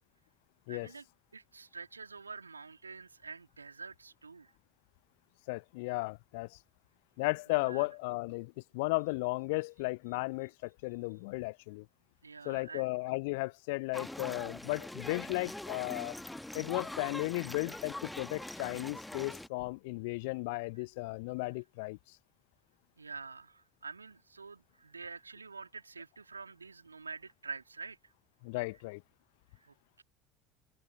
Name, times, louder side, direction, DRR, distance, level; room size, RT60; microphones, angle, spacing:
voice 1, 0.7-1.0 1.3-4.5 7.6-7.9 12.2-12.9 23.0-28.1 29.6-30.0, right 4 dB, 80° right, 2.8 m, -47 dB
voice 2, 5.5-6.6 7.2-11.9 12.4-16.1 16.5-22.0 28.4-29.0, left 26 dB, 60° left, 0.5 m, -35 dB
sound 1, 13.9-19.5, left 1 dB, 5° left, 1.4 m, -43 dB
open air
figure-of-eight pair, 65°, 0 cm